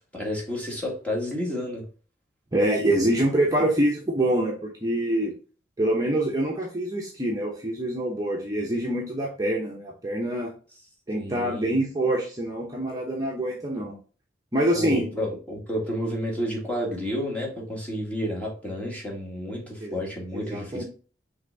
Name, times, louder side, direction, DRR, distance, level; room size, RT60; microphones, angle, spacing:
voice 1, 0.1-1.9 11.1-11.8 14.7-20.8, equal, 10° left, 1.6 m, -31 dB
voice 2, 2.5-5.3 5.8-10.5 11.1-13.9 14.5-15.1 19.8-20.0 20.3-20.8, right 1 dB, 20° right, 0.9 m, -25 dB
5.7 x 3.4 x 2.7 m
head